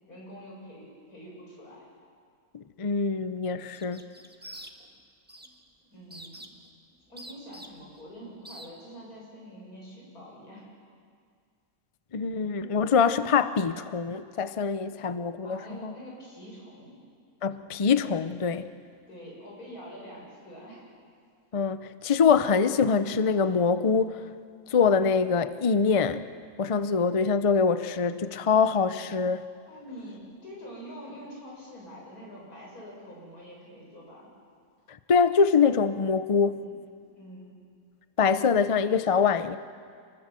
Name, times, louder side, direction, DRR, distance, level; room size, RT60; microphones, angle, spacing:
voice 1, 0.1-1.9 5.9-6.5 7.1-10.7 15.4-17.0 19.1-20.8 29.7-34.3 36.5-36.8 37.1-37.5, equal, 80° left, -3 dB, 7.5 m, -45 dB
voice 2, 2.5-4.0 12.1-15.9 17.4-18.7 21.5-24.2 24.7-26.2 26.6-29.4 35.1-36.6 38.2-39.6, left 5 dB, 45° left, 12 dB, 0.4 m, -24 dB
sound 1, 3.7-5.0 5.3-5.6 6.1-6.7 7.2-8.0 8.4-8.7, right 1 dB, 5° right, 1.4 m, -45 dB
27.5 x 20.5 x 7.6 m, 2.1 s
omnidirectional pair, 1.6 m